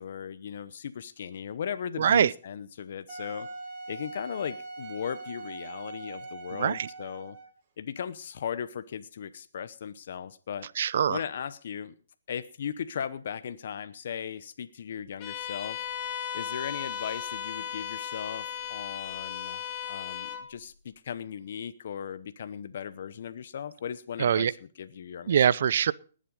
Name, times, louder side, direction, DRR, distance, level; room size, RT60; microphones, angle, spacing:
voice 1, 0.0-3.5 3.9-7.4 7.8-10.7 11.1-11.9 12.3-15.8 16.3-25.5, left 8 dB, 60° left, 0.8 m, -37 dB
voice 2, 2.0-2.3 6.6-6.9 10.8-11.2 24.2-24.5 25.3-25.9, right 8 dB, 60° right, 0.6 m, -23 dB
Wind instrument woodwind instrument, 3.1-7.6, right 3 dB, 40° right, 5.3 m, -42 dB
Bowed string instrument, 15.2-20.5, left 9 dB, 30° left, 3.8 m, -36 dB
19.5 x 7.5 x 5.2 m
hypercardioid pair, 140°, 0 cm